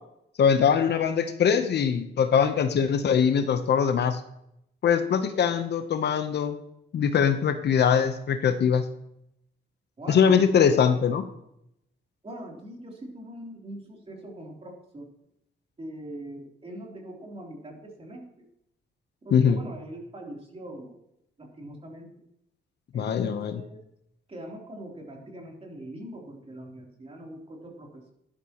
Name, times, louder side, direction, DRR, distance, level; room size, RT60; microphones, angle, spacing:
voice 1, 0.4-4.2 4.8-6.6 6.9-8.8 10.1-11.2 19.3-19.6 22.9-23.6, left 7 dB, 60° left, 9 dB, 0.9 m, -22 dB
voice 2, 10.0-10.4 12.2-15.1 15.8-18.2 19.3-21.0 21.4-22.1 22.9-23.8 24.3-28.1, right 1 dB, 30° right, 0 dB, 3.4 m, -42 dB
12.0 x 11.5 x 3.0 m, 0.78 s
cardioid pair, 90°, 20 cm